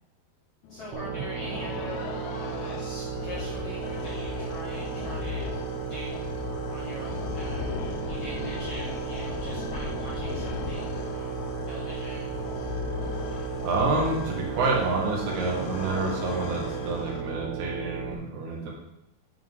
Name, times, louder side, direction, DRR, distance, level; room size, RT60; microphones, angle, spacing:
sound 1, 0.6-17.6, left 6 dB, 90° left, 2.9 m, -37 dB
voice 1, 0.7-5.5 5.8-6.3 6.7-12.5 13.3-13.6, equal, 50° left, -7 dB, 1.9 m, -42 dB
sound 2, 0.9-18.1, right 8 dB, 75° right, 3.0 m, -35 dB
voice 2, 13.6-18.7, right 3 dB, 55° right, -3 dB, 3.2 m, -28 dB
9.1 x 7.6 x 3.8 m, 0.86 s
omnidirectional pair, 4.5 m